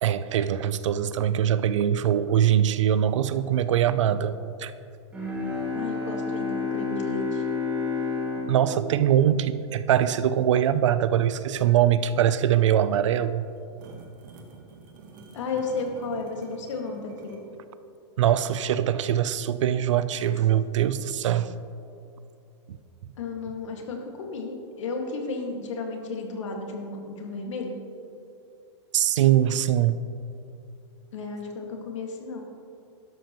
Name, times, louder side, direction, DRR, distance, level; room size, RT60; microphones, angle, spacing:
voice 1, 0.0-4.7 8.5-13.5 18.2-21.5 22.7-22.8 28.9-30.0, right 10 dB, 85° right, 14 dB, 0.6 m, -22 dB
Bowed string instrument, 5.1-10.3, left 4 dB, 10° right, 1.8 m, -31 dB
voice 2, 5.7-7.4 15.3-17.4 23.2-27.8 31.1-32.4, left 3 dB, 85° left, 2 dB, 2.1 m, -33 dB
sound 1, 12.9-17.5, right 4 dB, 40° right, 1.4 m, -48 dB
12.0 x 12.0 x 3.1 m, 2.6 s
supercardioid pair, 180°, 15 cm